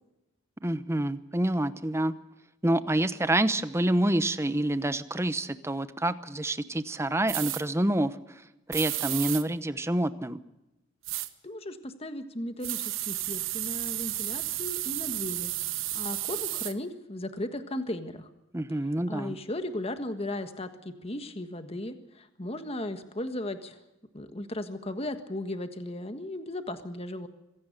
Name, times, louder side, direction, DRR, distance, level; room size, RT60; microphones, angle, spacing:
voice 1, 0.6-2.1 2.6-8.4 8.7-10.4 18.5-19.3, right 1 dB, 15° right, 13 dB, 0.9 m, -27 dB
sound 1, 7.3-7.6 8.7-9.4 11.0-11.3 12.6-16.7, right 15 dB, 75° right, 1.2 m, -32 dB
voice 2, 11.4-15.5 15.9-18.3 19.1-23.8 24.1-27.3, left 1 dB, 30° left, 8 dB, 1.5 m, -36 dB
25.0 x 17.0 x 6.7 m, 0.97 s
head